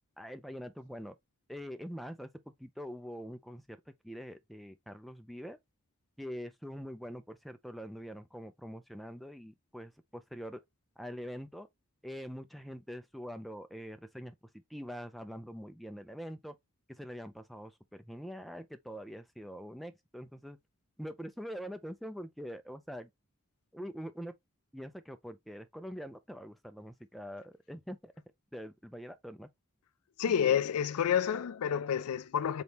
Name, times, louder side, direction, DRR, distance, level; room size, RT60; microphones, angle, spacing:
voice 1, 0.2-1.2 1.5-2.3 2.6-5.6 6.2-10.6 11.0-11.7 12.0-16.6 16.9-20.6 21.0-23.1 23.7-24.3 24.7-28.1 28.5-29.5 30.3-30.4, equal, ahead, 0.3 m, -44 dB
voice 2, 30.2-32.6, left 8 dB, 85° left, 0.4 m, -29 dB
3.9 x 3.5 x 2.8 m
head